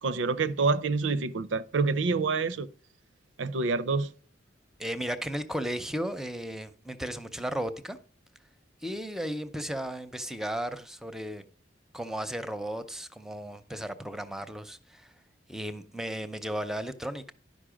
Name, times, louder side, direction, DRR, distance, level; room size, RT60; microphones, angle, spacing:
voice 1, 0.0-2.7 3.4-4.1, right 4 dB, 90° right, 0.5 m, -27 dB
voice 2, 4.8-8.0 8.8-11.4 11.9-15.1 15.5-17.3, equal, 5° right, 0.5 m, -35 dB
11.5 x 5.3 x 5.0 m
head